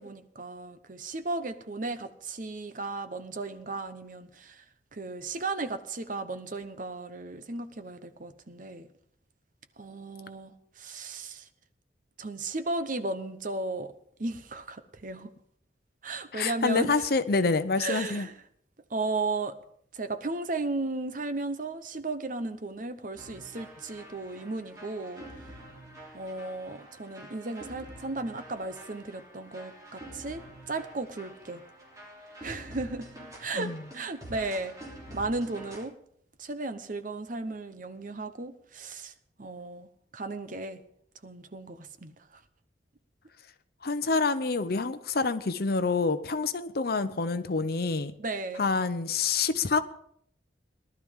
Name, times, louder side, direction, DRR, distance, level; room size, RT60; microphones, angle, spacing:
voice 1, 0.0-4.6 4.9-8.9 9.8-11.5 12.2-13.9 14.2-15.3 16.0-16.9 17.8-18.3 18.9-19.5 19.9-25.2 26.1-31.6 32.4-33.1 33.4-34.7 35.1-35.9 36.4-39.1 39.4-40.8 41.2-42.1 48.2-48.7, right 3 dB, 45° right, 0.9 m, -35 dB
voice 2, 16.3-18.3 33.5-33.8 43.8-48.1 48.6-49.8, left 4 dB, 55° left, 0.8 m, -27 dB
sound 1, 23.1-35.8, right 1 dB, 20° right, 3.2 m, -47 dB
18.5 x 12.0 x 3.7 m
head